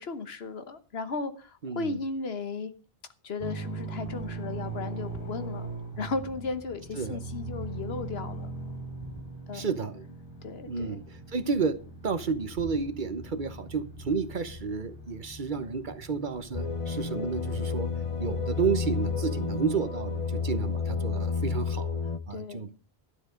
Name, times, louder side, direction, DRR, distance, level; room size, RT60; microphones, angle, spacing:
voice 1, 0.0-2.7 3.2-5.7 6.0-8.5 9.5-9.7 10.4-11.0 22.3-22.6, left 4 dB, 80° left, 10 dB, 1.4 m, -35 dB
voice 2, 1.6-2.0 6.9-7.2 9.5-10.1 10.7-11.8 12.0-17.9 18.2-21.9 22.3-22.7, right 5 dB, 50° right, 12 dB, 1.1 m, -31 dB
sound 1, 3.4-19.2, right 3 dB, 55° left, 3.9 m, -41 dB
sound 2, 16.5-22.2, left 5 dB, 35° left, 0.8 m, -31 dB
12.0 x 10.5 x 5.1 m, 0.37 s
omnidirectional pair, 1.0 m